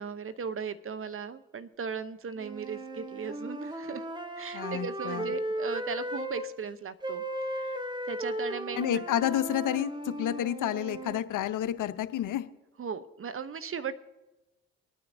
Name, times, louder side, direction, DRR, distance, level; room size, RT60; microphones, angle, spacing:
voice 1, 0.0-4.0 4.4-7.2 7.5-7.8 8.1-9.3 12.8-13.9, right 6 dB, 35° right, 12 dB, 0.8 m, -37 dB
sound 1, 2.4-6.5 7.0-11.2, right 1 dB, 10° right, 1.0 m, -36 dB
voice 2, 4.5-5.3 8.8-9.9 10.2-12.4, left 11 dB, 55° left, 12 dB, 0.8 m, -30 dB
26.0 x 9.5 x 2.7 m, 1.1 s
hypercardioid pair, 50°, 36 cm